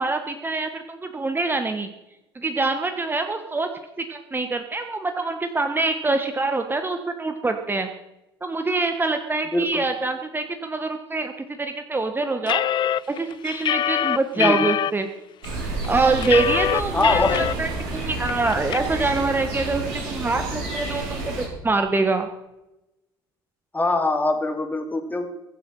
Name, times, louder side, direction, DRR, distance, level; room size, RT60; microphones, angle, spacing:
voice 1, 0.0-1.9 2.3-3.7 4.0-7.9 8.4-12.6 13.1-15.1 15.9-22.3, right 3 dB, 15° right, 6 dB, 1.5 m, -25 dB
voice 2, 9.5-9.8 14.3-14.7 16.9-17.4 23.7-25.3, left 2 dB, 15° left, 4 dB, 2.8 m, -23 dB
sound 1, 12.5-14.9 15.4-15.5 15.8-17.5 17.9-18.0 18.3-18.8, left 11 dB, 40° left, 0.5 m, -24 dB
sound 2, 15.4-21.5, right 2 dB, 60° right, 5.9 m, -30 dB
22.5 x 7.9 x 5.7 m, 0.94 s
hypercardioid pair, 60°, 12 cm